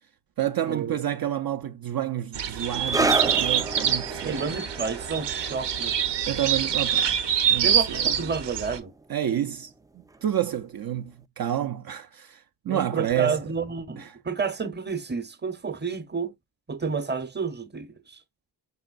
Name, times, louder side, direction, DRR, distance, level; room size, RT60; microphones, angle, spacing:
voice 1, 0.4-4.6 6.3-8.1 9.1-9.7 10.2-13.4 14.0-14.2, right 11 dB, 60° right, 0.6 m, -29 dB
sound 1, 2.3-8.8, right 8 dB, 80° right, 0.9 m, -25 dB
sound 2, 2.9-9.9 10.1-10.4 11.1-11.2, right 2 dB, 10° right, 0.3 m, -32 dB
voice 2, 4.2-6.0 7.6-8.9 12.7-16.3 16.7-18.2, right 5 dB, 25° right, 0.9 m, -30 dB
5.5 x 3.9 x 2.4 m
wide cardioid pair, 105°, 42 cm